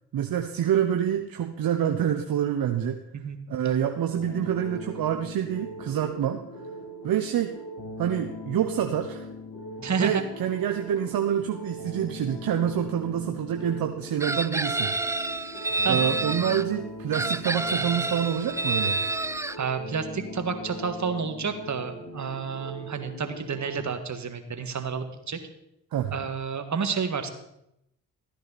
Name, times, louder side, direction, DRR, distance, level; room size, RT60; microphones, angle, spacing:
voice 1, 0.1-3.0 3.5-6.4 7.0-7.5 8.0-9.3 10.0-14.9 15.9-19.0 25.9-26.1, right 9 dB, 65° right, 6 dB, 0.9 m, -27 dB
sound 1, 4.2-23.8, left 1 dB, 55° left, 3.3 m, -40 dB
voice 2, 9.8-10.2 15.8-16.2 19.6-25.4 26.1-27.3, right 5 dB, 45° right, 7 dB, 1.7 m, -30 dB
Chicken rooster, 14.2-16.6 17.1-19.6, right 3 dB, 10° right, 0.3 m, -28 dB
14.0 x 10.0 x 4.2 m, 0.83 s
supercardioid pair, 50°, 38 cm